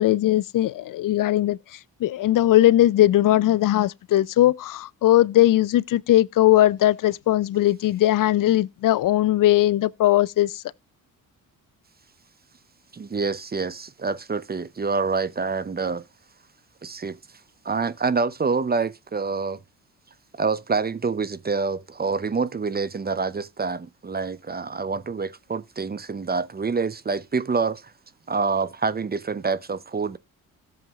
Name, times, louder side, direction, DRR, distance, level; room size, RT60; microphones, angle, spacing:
voice 1, 0.0-10.6, left 14 dB, 55° left, 0.6 m, -19 dB
voice 2, 12.9-16.0 16.8-17.2 17.6-19.6 20.4-27.9 28.3-30.2, right 4 dB, 25° right, 0.7 m, -26 dB
17.0 x 7.2 x 2.4 m
hypercardioid pair, 55°, 39 cm